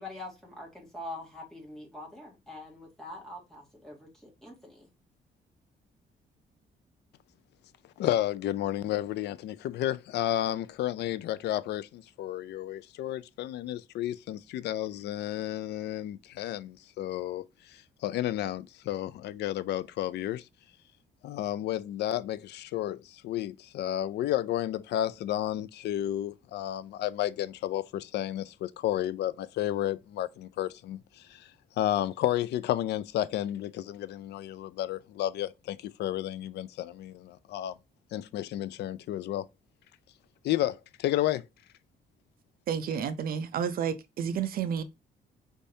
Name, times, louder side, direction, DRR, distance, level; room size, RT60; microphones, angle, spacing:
voice 1, 0.0-4.9, left 1 dB, 5° left, 1.9 m, -44 dB
voice 2, 8.0-20.4 21.2-31.5 31.8-37.7 38.1-39.5 40.4-41.4, left 12 dB, 90° left, 0.4 m, -32 dB
voice 3, 42.7-44.8, right 8 dB, 65° right, 0.5 m, -31 dB
5.2 x 3.5 x 2.7 m
cardioid pair, 160°, 17 cm